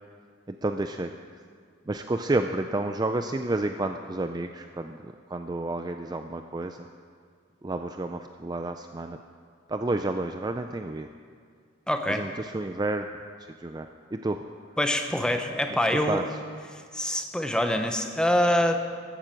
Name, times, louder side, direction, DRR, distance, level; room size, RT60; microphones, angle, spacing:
voice 1, 0.5-1.1 1.9-6.9 7.6-9.2 9.7-11.1 12.1-13.1 13.6-14.4 16.1-16.2, right 2 dB, 20° right, 7 dB, 0.4 m, -30 dB
voice 2, 11.9-12.3 14.8-16.3 16.7-18.8, left 1 dB, 5° left, 5 dB, 0.9 m, -25 dB
14.5 x 9.7 x 7.6 m, 2.1 s
head